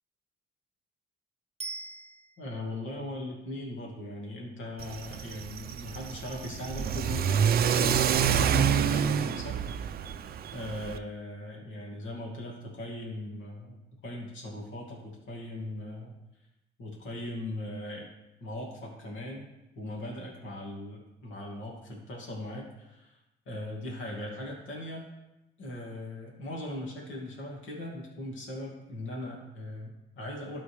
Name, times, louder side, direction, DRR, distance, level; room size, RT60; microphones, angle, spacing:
Bicycle bell, 1.6-2.7 11.8-11.9, right 3 dB, 30° right, 0.8 m, -41 dB
voice 1, 2.4-9.6 10.5-16.1 16.8-18.1 18.4-19.5 19.8-23.2 23.5-25.1 25.6-30.6, left 1 dB, 75° left, -1 dB, 2.2 m, -39 dB
Car / Accelerating revving vroom, 4.8-11.0, right 8 dB, 50° right, 0.4 m, -27 dB
12.5 x 4.3 x 3.2 m, 0.97 s
cardioid pair, 90°, 20 cm